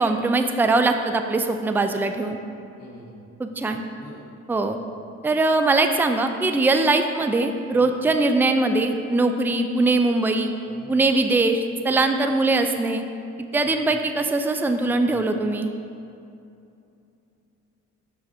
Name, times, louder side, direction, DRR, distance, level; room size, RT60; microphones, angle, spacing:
voice 1, 0.0-2.4 3.4-3.8 4.5-4.8 5.2-10.5 10.9-13.0 13.4-15.7, right 2 dB, 5° right, 6 dB, 0.4 m, -21 dB
voice 2, 2.8-3.2 4.0-4.2 7.8-8.1 10.6-10.9 13.6-13.9 14.9-15.2, equal, 55° left, -5 dB, 1.4 m, -45 dB
6.4 x 6.0 x 4.2 m, 2.6 s
cardioid pair, 90°, 30 cm